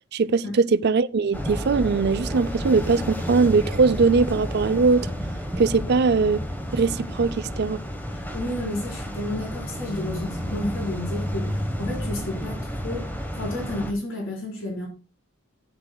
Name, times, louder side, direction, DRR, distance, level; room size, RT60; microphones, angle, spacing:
voice 1, 0.1-5.1 5.6-6.4 6.7-7.8, right 4 dB, 50° right, 0.4 m, -21 dB
sound 1, 1.3-13.9, equal, 10° left, 1.1 m, -31 dB
voice 2, 8.1-14.9, left 1 dB, 65° left, 4.2 m, -32 dB
12.5 x 10.0 x 2.3 m
head